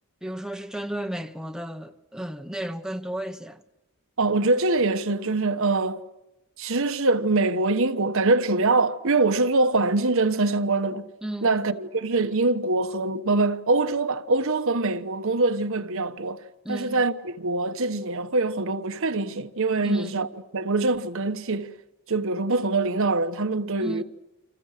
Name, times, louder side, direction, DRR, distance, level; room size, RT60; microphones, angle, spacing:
voice 1, 0.2-3.6 11.2-11.6 16.6-17.0 19.8-20.3 23.8-24.0, right 1 dB, 5° right, 0.9 m, -33 dB
voice 2, 4.2-6.0 6.6-11.1 11.4-21.7 22.1-24.0, right 3 dB, 65° right, 1.2 m, -24 dB
30.0 x 26.5 x 6.6 m
head